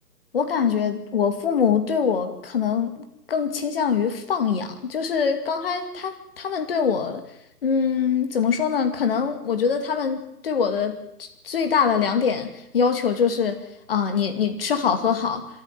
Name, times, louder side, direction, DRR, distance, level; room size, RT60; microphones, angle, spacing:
voice 1, 0.3-7.2 7.6-13.6 13.9-15.5, left 6 dB, 35° left, 8 dB, 2.4 m, -24 dB
26.5 x 14.0 x 7.6 m, 0.82 s
figure-of-eight pair, 140°, 46 cm